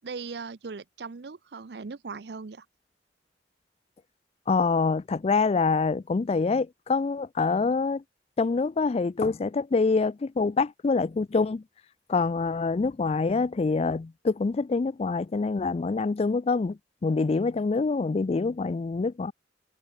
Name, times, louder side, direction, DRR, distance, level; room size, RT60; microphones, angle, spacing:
voice 1, 0.0-2.7, right 4 dB, 65° right, 0.6 m, -39 dB
voice 2, 4.5-8.0 8.4-11.6 12.1-19.3, left 4 dB, 35° left, 0.4 m, -26 dB
head